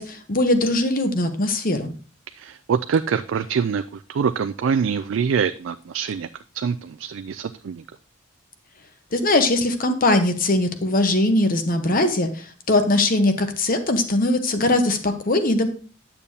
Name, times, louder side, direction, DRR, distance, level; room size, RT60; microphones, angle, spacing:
voice 1, 0.0-1.9 9.1-15.7, left 2 dB, 45° left, 7 dB, 1.0 m, -21 dB
voice 2, 2.4-6.3 6.5-7.8, right 6 dB, 70° right, 11 dB, 0.3 m, -24 dB
10.0 x 6.9 x 2.7 m, 0.39 s
head